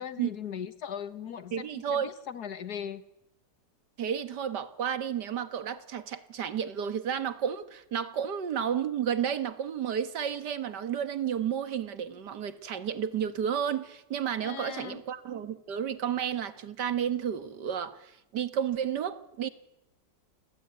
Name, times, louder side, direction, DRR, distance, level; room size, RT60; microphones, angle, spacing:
voice 1, 0.0-3.0 14.4-15.0, left 8 dB, 65° left, 1.7 m, -39 dB
voice 2, 1.5-2.1 4.0-19.5, right 8 dB, 70° right, 1.9 m, -32 dB
28.0 x 20.5 x 9.4 m
omnidirectional pair, 1.9 m